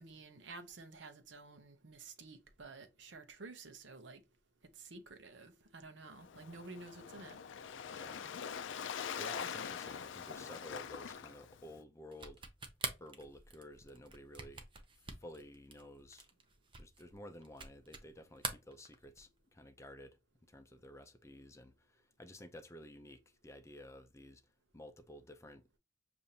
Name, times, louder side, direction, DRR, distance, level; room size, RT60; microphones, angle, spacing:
voice 1, 0.0-4.2 4.7-7.4, right 3 dB, 70° right, 0.8 m, -52 dB
Waves surf, 6.1-11.8, left 7 dB, 80° left, 0.4 m, -44 dB
voice 2, 7.9-8.3 8.7-12.5 13.0-14.7 15.2-16.3 16.8-20.2 20.5-24.4 24.7-25.8, left 1 dB, 15° left, 0.5 m, -53 dB
sound 1, 12.1-18.1 18.4-19.4, right 4 dB, 25° right, 0.7 m, -45 dB
6.8 x 2.6 x 2.8 m
head